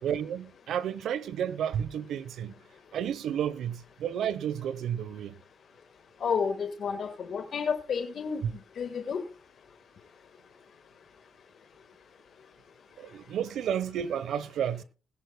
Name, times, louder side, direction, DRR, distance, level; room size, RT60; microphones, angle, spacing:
voice 1, 0.0-2.5 2.9-5.4 8.4-8.5 13.0-14.8, right 9 dB, 75° right, 1.0 m, -31 dB
voice 2, 6.2-8.4 8.8-9.2, left 6 dB, 55° left, 1.7 m, -30 dB
20.0 x 10.5 x 2.3 m
cardioid pair, 90°, 0 cm